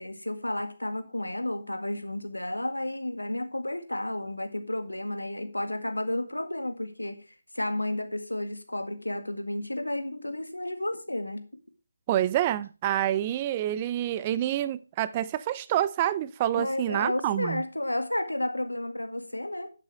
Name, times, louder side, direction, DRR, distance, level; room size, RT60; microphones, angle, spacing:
voice 1, 0.0-7.2 7.5-11.4 16.5-19.7, left 1 dB, 85° left, 1.8 m, -32 dB
voice 2, 12.1-17.6, right 12 dB, 20° right, 0.5 m, -27 dB
11.5 x 8.0 x 3.4 m
figure-of-eight pair, 155°, 0 cm